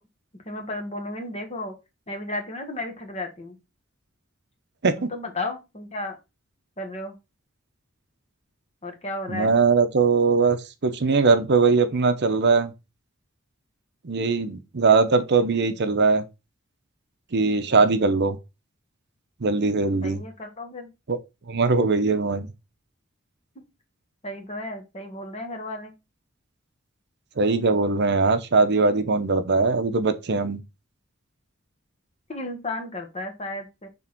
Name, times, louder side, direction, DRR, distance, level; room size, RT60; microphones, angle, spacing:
voice 1, 0.4-1.7 2.1-3.6 5.0-6.1 6.8-7.2 8.8-9.5 20.0-20.9 24.2-25.9 32.3-33.9, left 2 dB, 35° left, 1.5 m, -33 dB
voice 2, 9.3-10.6 10.8-12.7 14.0-16.2 17.3-18.4 19.4-20.2 21.1-21.2 21.5-22.5 27.4-30.6, right 4 dB, 55° right, 0.7 m, -21 dB
6.3 x 3.6 x 4.4 m
head